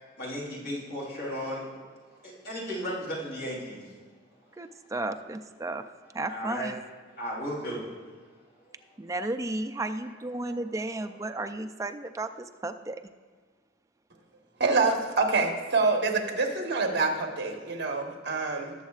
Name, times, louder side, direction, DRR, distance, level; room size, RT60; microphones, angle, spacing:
voice 1, 0.2-1.8 2.2-3.9 6.3-6.7 7.2-7.8 8.7-8.8 10.4-10.6, equal, 55° left, -5 dB, 3.2 m, -35 dB
voice 2, 4.6-5.8 6.1-6.8 9.0-12.3 12.6-13.0, right 2 dB, 15° right, 7 dB, 0.4 m, -33 dB
voice 3, 14.6-18.7, right 3 dB, 60° right, 2 dB, 1.3 m, -26 dB
18.5 x 7.2 x 2.4 m, 1.5 s
head